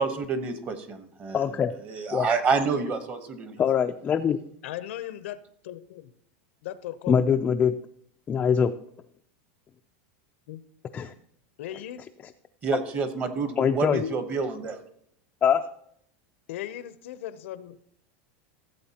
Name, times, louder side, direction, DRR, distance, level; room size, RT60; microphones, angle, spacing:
voice 1, 0.0-1.4 1.9-3.6 12.6-14.8, right 4 dB, 25° right, 10 dB, 1.0 m, -28 dB
voice 2, 1.3-1.7 2.1-2.3 3.6-4.4 7.1-7.7 8.3-8.7 10.9-11.1 13.6-14.0 15.4-15.6, left 7 dB, 20° left, 5 dB, 0.3 m, -23 dB
voice 3, 4.6-6.1 6.6-7.2 10.5-10.6 11.6-12.0 16.5-17.8, left 12 dB, 80° left, 14 dB, 0.7 m, -37 dB
15.0 x 7.7 x 2.8 m, 0.69 s
supercardioid pair, 155°, 7 cm